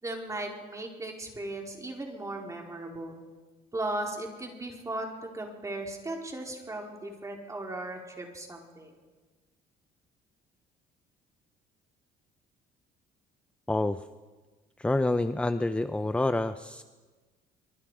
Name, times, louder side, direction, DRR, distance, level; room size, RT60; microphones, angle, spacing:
voice 1, 0.0-3.2 3.7-8.9, right 2 dB, 20° right, 0 dB, 4.6 m, -37 dB
voice 2, 13.7-14.0 14.8-16.8, left 2 dB, 5° left, 11 dB, 0.7 m, -27 dB
26.0 x 24.0 x 5.1 m, 1.3 s
cardioid pair, 110°, 17 cm